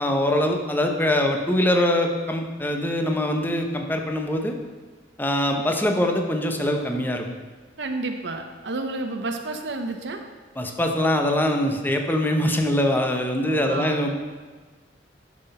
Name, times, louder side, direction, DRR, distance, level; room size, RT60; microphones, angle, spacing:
voice 1, 0.0-4.5 5.2-7.3 10.6-14.2, left 1 dB, 10° left, 3 dB, 0.9 m, -23 dB
voice 2, 7.8-10.2 13.5-14.1, right 2 dB, 75° right, 5 dB, 0.8 m, -31 dB
11.0 x 6.0 x 5.5 m, 1.4 s
head